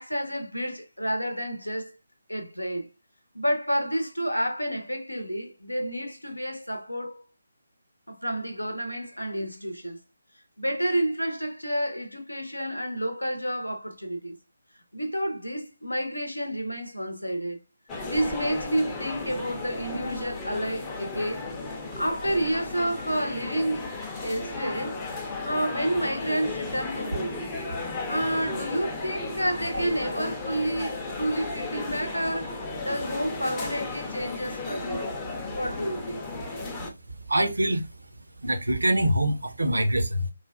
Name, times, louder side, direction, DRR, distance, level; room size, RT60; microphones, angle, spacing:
voice 1, 0.0-2.0 2.3-2.9 3.3-7.2 8.1-10.0 10.6-14.4 14.9-17.6 18.0-21.5 21.9-23.9 24.2-25.0 25.4-27.4 28.1-35.1 35.5-36.2, right 1 dB, 85° left, 0.8 m, -30 dB
sound 1, 17.9-36.9, left 3 dB, 15° left, 0.6 m, -35 dB
voice 2, 37.3-37.9 38.4-40.3, right 1 dB, 70° right, 0.6 m, -25 dB
3.1 x 2.2 x 2.3 m
figure-of-eight pair, 150°, 0 cm